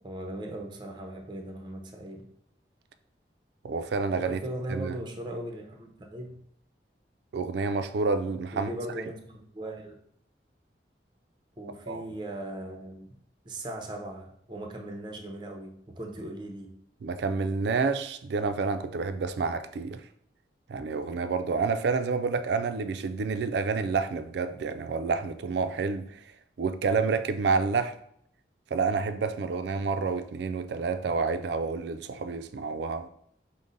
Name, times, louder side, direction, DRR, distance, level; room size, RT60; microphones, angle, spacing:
voice 1, 0.0-2.3 4.1-6.4 8.5-10.0 11.6-13.2 13.4-16.7, right 1 dB, 25° right, 0.6 m, -38 dB
voice 2, 3.6-4.4 4.7-4.9 7.3-8.7 11.9-12.0 17.0-20.0 20.7-26.2 26.6-28.0 28.7-33.1, right 4 dB, 65° right, 0.3 m, -29 dB
5.1 x 2.0 x 3.9 m
head